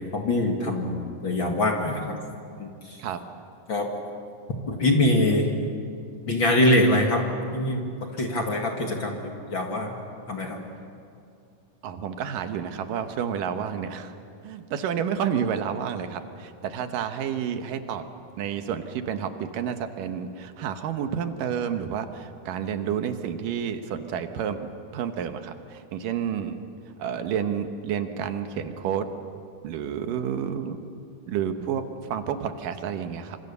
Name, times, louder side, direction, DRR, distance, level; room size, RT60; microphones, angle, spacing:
voice 1, 0.1-2.2 2.6-3.0 3.7-3.9 4.7-5.5 6.3-7.3 7.5-7.8 8.1-9.9 10.3-10.6, left 1 dB, 40° left, 2 dB, 2.1 m, -24 dB
voice 2, 11.8-14.2 14.4-18.0 18.4-26.6 27.0-29.1 29.6-30.8 31.3-31.8 32.1-33.4, right 8 dB, 75° right, 8 dB, 2.7 m, -30 dB
26.0 x 26.0 x 6.9 m, 2.5 s
omnidirectional pair, 4.0 m